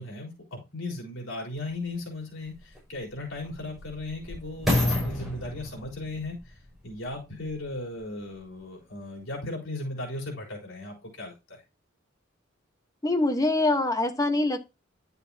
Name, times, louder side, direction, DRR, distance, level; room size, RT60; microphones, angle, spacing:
voice 1, 0.0-11.6, left 2 dB, 75° left, -2 dB, 3.9 m, -37 dB
sound 1, 1.6-1.7 2.5-7.8 8.4-8.5, left 1 dB, ahead, 6.4 m, -31 dB
voice 2, 13.0-14.6, left 2 dB, 20° left, 6 dB, 1.2 m, -24 dB
11.0 x 6.9 x 2.8 m, 0.26 s
head